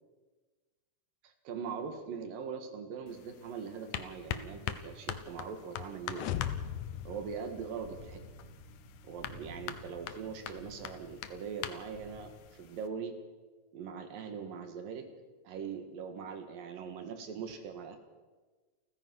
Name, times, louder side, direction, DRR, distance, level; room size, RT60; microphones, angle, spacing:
voice 1, 1.2-6.4 7.1-8.2 9.0-13.1 13.7-15.1 15.5-18.0, right 6 dB, 80° right, 6 dB, 3.4 m, -41 dB
sound 1, 3.1-12.9, left 10 dB, 70° left, 2.4 m, -44 dB
sound 2, 6.1-8.3, left 11 dB, 90° left, 1.4 m, -38 dB
sound 3, 6.4-12.3, equal, 30° left, 4.9 m, -53 dB
29.5 x 15.0 x 6.2 m, 1.3 s
omnidirectional pair, 4.0 m